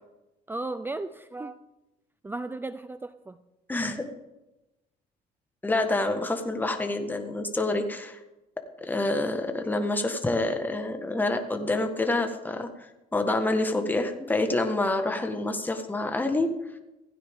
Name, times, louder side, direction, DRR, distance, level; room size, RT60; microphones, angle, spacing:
voice 1, 0.5-1.6 2.2-3.4, right 2 dB, 10° right, 12 dB, 0.5 m, -35 dB
voice 2, 3.7-4.0 5.6-8.2 8.8-16.5, left 2 dB, 10° left, 5 dB, 1.6 m, -27 dB
16.0 x 15.5 x 3.7 m, 0.98 s
cardioid pair, 110°, 17 cm